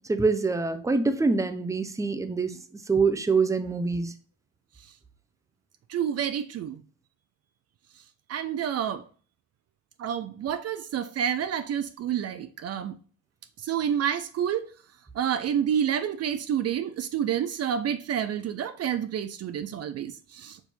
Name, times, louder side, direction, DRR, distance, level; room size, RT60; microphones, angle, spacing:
voice 1, 0.1-2.5 2.9-4.1, right 4 dB, 10° right, 0.6 m, -25 dB
voice 2, 5.9-6.8 8.3-9.0 10.0-12.9 13.6-14.7 15.1-20.6, right 9 dB, 55° right, 0.5 m, -29 dB
4.5 x 2.7 x 4.1 m
cardioid pair, 90°, 30 cm